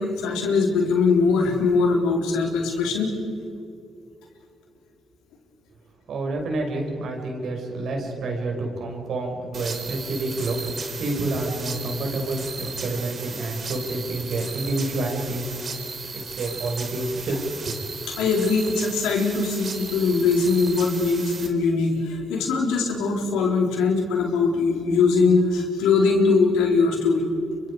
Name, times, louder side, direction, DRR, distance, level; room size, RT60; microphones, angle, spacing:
voice 1, 0.0-3.1 18.2-27.2, left 4 dB, 85° left, 1 dB, 4.2 m, -21 dB
voice 2, 6.1-15.5 16.1-17.8, right 2 dB, 65° right, 2 dB, 5.7 m, -28 dB
sound 1, 9.5-21.5, right 4 dB, 50° right, 3.6 m, -36 dB
30.0 x 24.5 x 5.0 m, 2.6 s
supercardioid pair, 60°, 0 cm